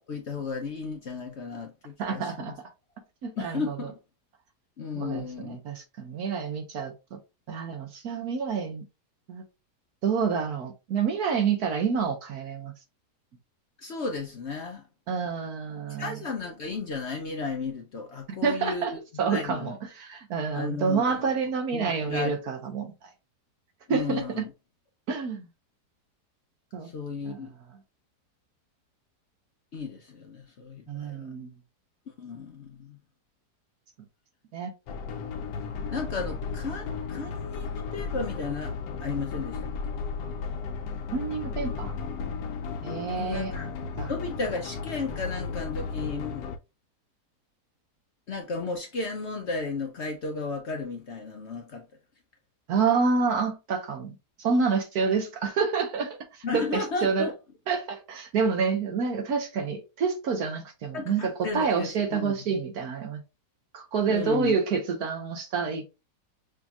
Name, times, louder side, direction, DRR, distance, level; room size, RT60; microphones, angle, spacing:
voice 1, 0.1-2.5 3.4-4.0 4.8-5.6 13.8-14.8 16.0-19.0 19.3-19.7 20.5-21.3 21.7-22.3 23.9-24.5 26.8-27.5 29.7-31.3 32.2-33.0 35.9-38.7 39.0-39.7 43.1-43.7 44.1-46.4 48.3-51.9 56.4-57.3 60.9-62.3 64.0-64.5, left 4 dB, 55° left, 0.8 m, -34 dB
voice 2, 2.0-2.6 3.2-3.9 5.0-7.2 7.5-8.9 9.3-9.4 10.0-12.7 15.1-16.2 18.4-22.9 23.9-24.4 25.1-25.5 26.7-26.9 27.2-27.5 30.9-31.5 34.5-34.7 41.1-41.9 42.8-43.7 44.0-44.1 52.7-57.3 57.7-63.2 63.7-65.8, right 5 dB, 65° right, 1.4 m, -28 dB
sound 1, 34.9-46.6, left 5 dB, 90° left, 1.3 m, -34 dB
6.1 x 2.8 x 2.4 m
omnidirectional pair, 1.8 m